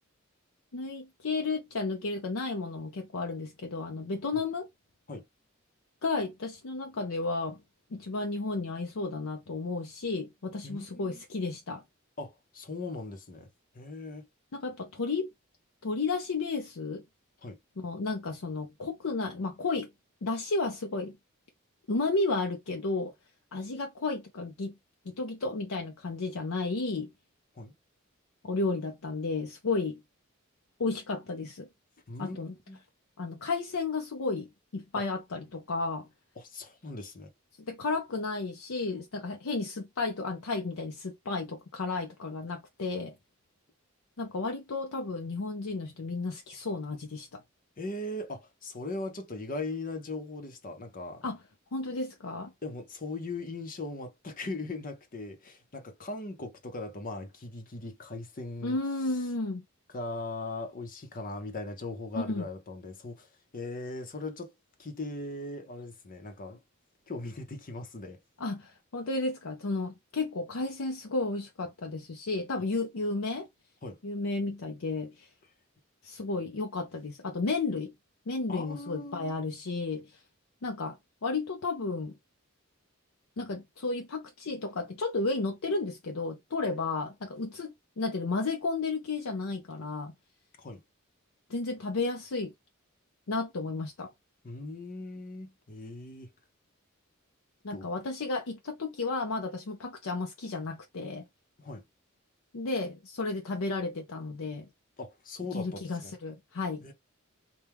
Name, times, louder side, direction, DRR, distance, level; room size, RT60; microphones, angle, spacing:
voice 1, 0.7-4.7 6.0-7.6 7.9-11.8 14.5-15.3 15.8-17.0 17.8-19.9 20.2-21.2 21.9-23.1 23.5-24.8 25.1-27.1 28.4-30.0 30.8-31.7 32.2-32.5 33.2-36.1 37.6-43.2 44.2-47.4 51.2-51.4 51.7-52.5 58.6-59.6 62.1-62.5 68.4-73.5 74.0-75.3 76.0-77.9 78.3-80.2 80.6-82.2 83.4-90.1 91.5-92.5 93.3-94.1 97.6-101.3 102.5-104.7 105.5-106.8, left 3 dB, 75° left, 0.6 m, -33 dB
voice 2, 10.6-11.2 12.2-13.5 13.7-14.3 17.4-17.6 27.5-27.7 32.1-32.4 32.7-32.8 36.4-37.3 47.8-51.3 52.6-58.8 59.9-64.5 64.8-66.6 67.1-68.2 73.8-74.0 78.5-79.3 90.6-90.8 94.4-96.3 97.7-97.8 101.6-101.8 105.0-106.1 106.8-106.9, left 2 dB, 40° left, 0.8 m, -39 dB
4.4 x 2.3 x 3.4 m
head